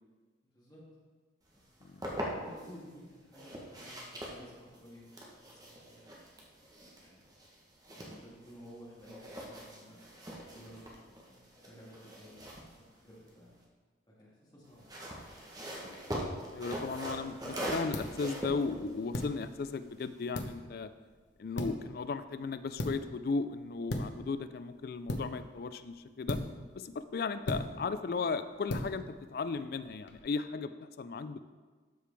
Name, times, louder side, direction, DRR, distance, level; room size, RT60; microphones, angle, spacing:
voice 1, 0.5-0.8 1.5-1.9 2.3-6.3 7.0-7.3 7.9-10.0 10.5-11.0 11.3-12.4 12.8-13.5 14.1-15.1, equal, 25° left, -7 dB, 2.0 m, -54 dB
sound 1, 1.6-2.7 3.3-8.7 9.0-13.6 14.6-20.2, equal, 20° right, 1.1 m, -42 dB
voice 2, 16.5-20.9 21.4-26.4 26.8-31.4, left 4 dB, 50° left, 12 dB, 0.3 m, -36 dB
sound 2, 17.9-30.2, left 1 dB, 80° left, 0.8 m, -41 dB
12.5 x 4.9 x 3.4 m, 1.4 s
head